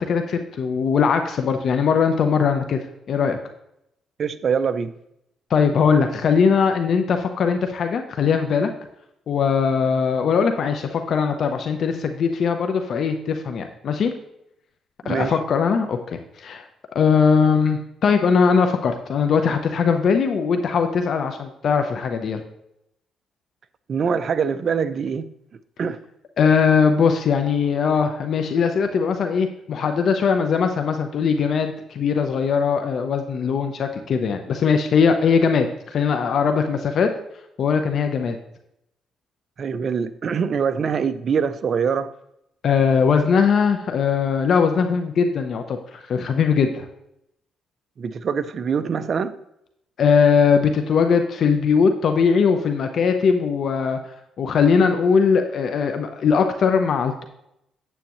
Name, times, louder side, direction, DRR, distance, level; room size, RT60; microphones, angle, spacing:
voice 1, 0.0-2.8 3.1-3.4 5.5-8.7 9.3-14.1 15.0-16.6 16.9-22.4 26.4-35.7 35.9-37.1 37.6-38.4 42.6-46.9 50.0-54.0 54.4-57.2, left 6 dB, 60° left, 6 dB, 0.8 m, -20 dB
voice 2, 4.2-4.9 15.0-15.3 23.9-25.3 25.8-26.0 39.6-42.1 48.0-49.4, right 6 dB, 50° right, 12 dB, 0.6 m, -24 dB
9.2 x 8.3 x 3.1 m, 0.80 s
cardioid pair, 90°, 0 cm